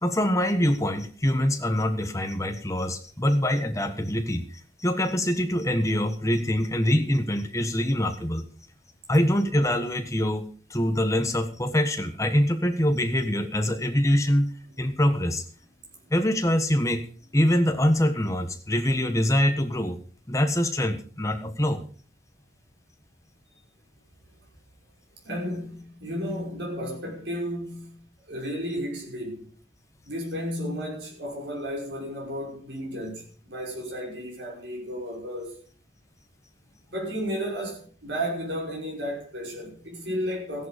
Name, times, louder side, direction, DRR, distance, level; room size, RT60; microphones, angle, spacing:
voice 1, 0.0-8.4 9.1-10.4 10.7-14.5 14.8-15.4 16.1-17.0 17.3-20.0 20.3-21.8, equal, 15° left, 1.4 m, -24 dB
voice 2, 25.2-29.5 30.1-35.6 36.9-40.7, equal, 65° right, 5.6 m, -33 dB
15.5 x 11.0 x 5.1 m
head